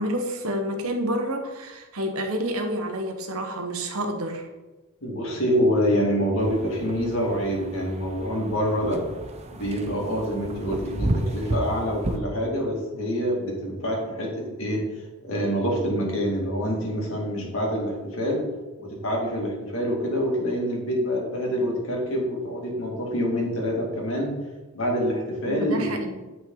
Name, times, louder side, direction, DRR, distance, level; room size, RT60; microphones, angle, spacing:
voice 1, 0.0-4.5 25.5-26.2, equal, 75° right, 5 dB, 1.1 m, -29 dB
voice 2, 5.0-9.0 9.5-14.8 15.2-18.4 18.8-24.3 24.7-26.0, equal, 65° left, -1 dB, 2.2 m, -26 dB
sound 1, 6.4-12.2, right 1 dB, 30° right, 0.6 m, -32 dB
9.3 x 5.7 x 3.9 m, 1.2 s
head